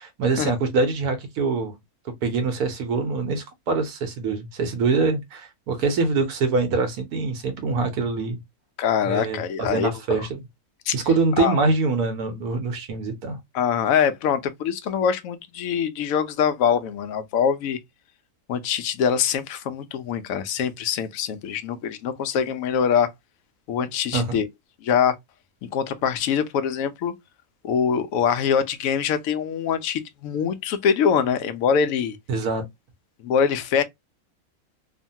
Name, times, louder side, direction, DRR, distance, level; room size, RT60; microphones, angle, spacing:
voice 1, 0.0-1.7 2.2-8.4 9.0-10.4 10.9-13.4 24.1-24.4 32.3-32.6, right 4 dB, 80° right, 1.4 m, -24 dB
voice 2, 8.8-9.9 10.9-11.0 11.4-11.6 13.5-17.8 18.5-23.1 23.7-24.5 24.8-25.1 25.6-27.1 27.6-32.2 33.2-33.8, left 7 dB, 70° left, 0.9 m, -23 dB
3.1 x 2.2 x 2.6 m
omnidirectional pair, 1.6 m